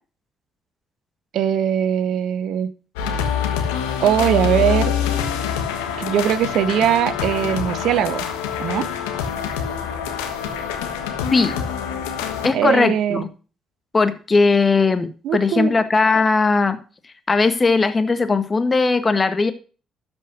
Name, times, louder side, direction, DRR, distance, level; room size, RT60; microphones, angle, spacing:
voice 1, 1.3-2.7 4.0-4.9 6.0-8.2 8.6-8.9 12.5-13.3 15.2-15.7, right 9 dB, 70° right, 15 dB, 0.9 m, -20 dB
sound 1, 3.0-12.5, left 8 dB, 85° left, 1.3 m, -25 dB
voice 2, 12.4-13.3 13.9-16.8 17.3-19.5, left 4 dB, 30° left, 9 dB, 1.7 m, -18 dB
13.0 x 5.3 x 6.2 m, 0.38 s
hypercardioid pair, 50°, 0 cm